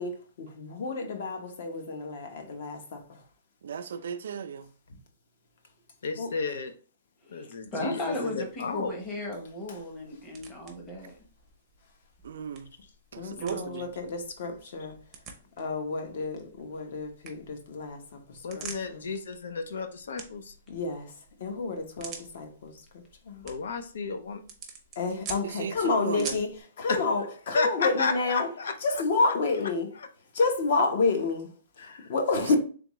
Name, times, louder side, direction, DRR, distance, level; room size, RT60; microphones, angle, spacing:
voice 1, 0.0-3.2 6.2-6.3 13.2-14.9 15.6-19.0 20.7-21.1 21.4-22.8 23.3-23.4 25.0-28.5 28.8-29.9 30.3-32.6, left 3 dB, 50° left, 0.9 m, -30 dB
voice 2, 3.6-4.7 12.2-12.7 13.1-13.9 25.4-26.3, right 6 dB, 65° right, 0.4 m, -35 dB
voice 3, 6.0-6.7 7.3-9.0 18.4-20.6 23.4-24.4 26.9-27.0 27.5-28.7 31.8-32.1, left 4 dB, 80° left, 0.6 m, -32 dB
voice 4, 7.2-11.2 13.4-13.6, left 1 dB, 15° left, 0.9 m, -36 dB
sound 1, 8.4-26.6, right 5 dB, 15° right, 0.6 m, -48 dB
3.6 x 3.4 x 3.0 m
hypercardioid pair, 175°, 0 cm